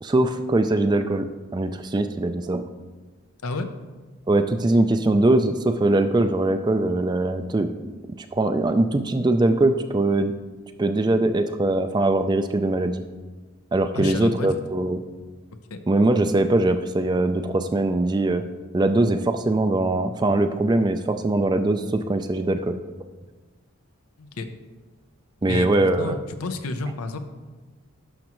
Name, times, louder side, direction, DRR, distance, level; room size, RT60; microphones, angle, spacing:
voice 1, 0.0-2.6 4.3-7.7 8.3-10.3 10.8-13.0 13.7-15.0 15.9-18.4 18.7-22.8 25.4-26.2, right 2 dB, 20° right, 8 dB, 0.3 m, -21 dB
voice 2, 13.9-14.6 15.7-15.8 24.2-24.5 25.5-27.2, left 3 dB, 85° left, 8 dB, 0.7 m, -30 dB
11.5 x 6.1 x 3.0 m, 1.3 s
head